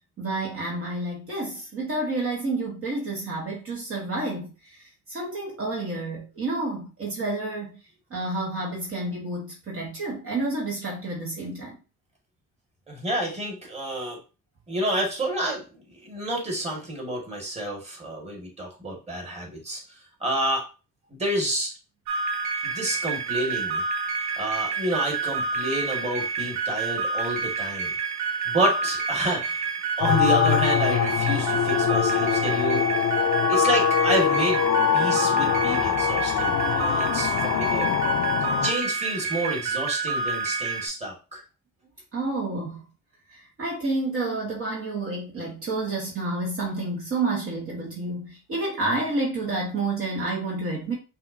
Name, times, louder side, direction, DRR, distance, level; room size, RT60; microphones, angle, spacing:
voice 1, 0.2-7.8 8.1-11.8 42.1-42.8 43.3-50.9, right 2 dB, 45° right, 1.4 m, -29 dB
voice 2, 12.9-14.2 14.7-19.8 20.2-20.7 21.1-21.7 22.6-23.8 24.4-27.9 28.5-29.7 30.0-32.8 33.5-34.6 34.9-38.0 38.6-41.4, right 1 dB, 20° right, 2.0 m, -29 dB
sound 1, 22.1-40.9, right 4 dB, 65° right, 0.9 m, -29 dB
sound 2, 30.0-38.7, left 9 dB, 70° left, 0.6 m, -23 dB
5.6 x 2.6 x 2.8 m
cardioid pair, 90°, 30 cm